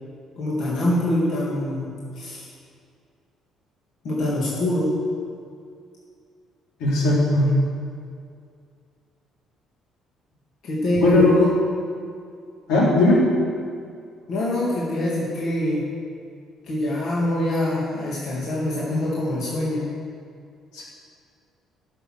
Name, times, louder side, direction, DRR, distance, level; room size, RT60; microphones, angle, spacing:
voice 1, 0.4-2.4 4.0-4.9 10.6-11.5 14.3-15.8 16.6-19.9, left 1 dB, 55° left, -7 dB, 2.6 m, -24 dB
voice 2, 6.8-7.5 11.0-11.5 12.7-13.2 20.7-20.8, left 2 dB, 85° left, -5 dB, 3.9 m, -17 dB
15.0 x 6.8 x 6.5 m, 2.3 s
cardioid pair, 170°, 0 cm